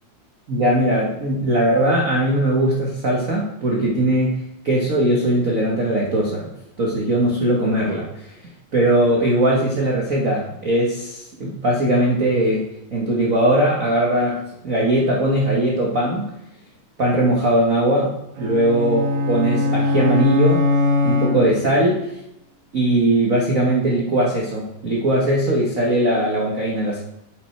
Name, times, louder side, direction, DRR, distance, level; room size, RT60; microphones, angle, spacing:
voice 1, 0.5-4.4 4.6-6.5 6.8-8.3 8.7-16.3 17.0-20.6 21.0-22.0 22.7-27.0, right 1 dB, 85° right, -3 dB, 0.7 m, -20 dB
sound 1, 18.4-21.9, left 2 dB, 70° right, 1.7 m, -21 dB
8.0 x 5.5 x 4.4 m, 0.82 s
omnidirectional pair, 3.5 m